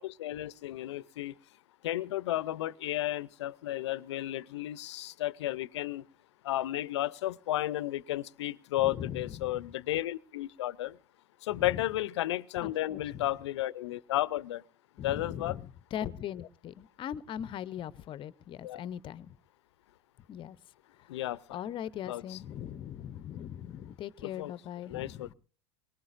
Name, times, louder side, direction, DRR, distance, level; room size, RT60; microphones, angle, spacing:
voice 1, 0.0-1.3 1.8-6.0 6.4-10.9 11.4-14.6 15.0-15.6 18.6-18.8 21.1-21.6 22.0-22.4 24.2-24.5 24.9-25.3, left 14 dB, 80° left, 0.6 m, -33 dB
voice 2, 8.8-9.6 11.5-11.8 12.6-13.3 15.0-15.6 15.9-19.3 20.3-20.6 21.5-25.3, left 10 dB, 35° left, 0.7 m, -40 dB
22.5 x 19.0 x 2.5 m
hypercardioid pair, 105°, 14 cm